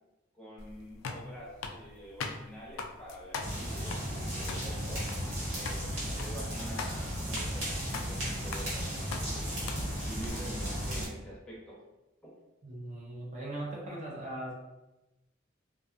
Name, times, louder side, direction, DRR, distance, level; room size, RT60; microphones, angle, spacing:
voice 1, 0.3-5.0 5.5-9.5 10.1-11.8 12.2-12.3, equal, 5° left, -6 dB, 0.6 m, -47 dB
sound 1, 0.6-10.3, left 4 dB, 80° left, 0.3 m, -43 dB
sound 2, 3.4-11.1, equal, 85° right, 1.2 m, -35 dB
voice 2, 12.6-14.5, right 1 dB, 35° right, -4 dB, 0.5 m, -39 dB
2.5 x 2.3 x 2.5 m, 1.0 s
head